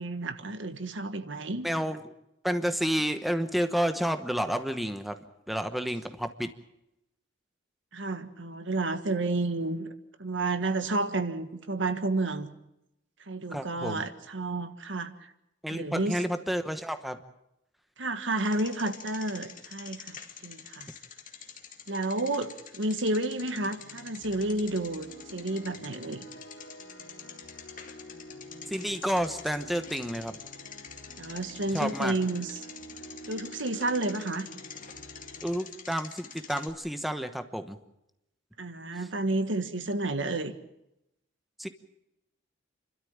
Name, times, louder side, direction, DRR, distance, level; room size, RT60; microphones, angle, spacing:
voice 1, 0.0-1.7 7.9-9.9 10.2-12.5 13.3-15.3 15.7-16.2 18.0-20.9 21.9-26.3 31.2-32.6 33.3-34.5 38.6-40.5, right 2 dB, 75° right, 9 dB, 1.6 m, -31 dB
voice 2, 1.6-2.0 2.4-5.2 5.5-6.5 13.5-14.0 15.6-17.2 28.7-30.4 31.7-32.2 35.4-37.8 41.6-41.7, equal, ahead, 8 dB, 1.0 m, -30 dB
Bicycle, 18.3-36.7, left 7 dB, 45° left, 2.1 m, -47 dB
sound 1, 23.6-35.6, equal, 60° left, 3.1 m, -49 dB
29.0 x 13.0 x 8.7 m, 0.86 s
head